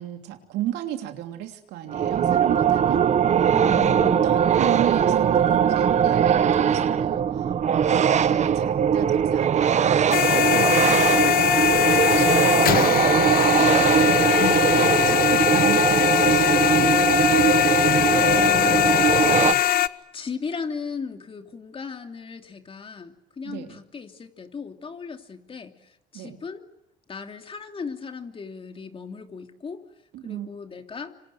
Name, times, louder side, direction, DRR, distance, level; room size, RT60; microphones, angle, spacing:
voice 1, 0.0-3.0 3.8-3.9 4.2-12.9 13.5-16.9 23.4-23.8 26.1-26.4 30.1-30.5, right 12 dB, 85° right, 6 dB, 3.0 m, -34 dB
sound 1, 1.9-19.5, right 8 dB, 45° right, 1.2 m, -20 dB
voice 2, 3.5-4.3 17.5-19.5 20.1-26.6 27.1-29.8 30.2-31.1, left 5 dB, 30° left, 6 dB, 2.9 m, -36 dB
sound 2, 10.1-19.9, left 12 dB, 60° left, 1.0 m, -21 dB
27.0 x 26.5 x 7.8 m, 0.86 s
cardioid pair, 110°, 17 cm